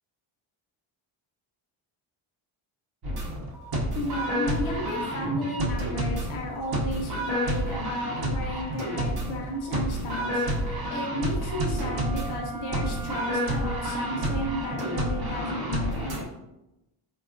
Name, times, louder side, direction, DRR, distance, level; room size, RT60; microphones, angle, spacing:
sound 1, 3.0-16.2, right 1 dB, 45° right, 0.7 m, -30 dB
voice 1, 3.9-16.2, left 1 dB, 65° left, 0 dB, 0.8 m, -33 dB
Wind instrument woodwind instrument, 11.4-15.5, right 6 dB, 85° right, 0.7 m, -39 dB
3.4 x 2.4 x 2.4 m, 0.92 s
cardioid pair, 130°, 50 cm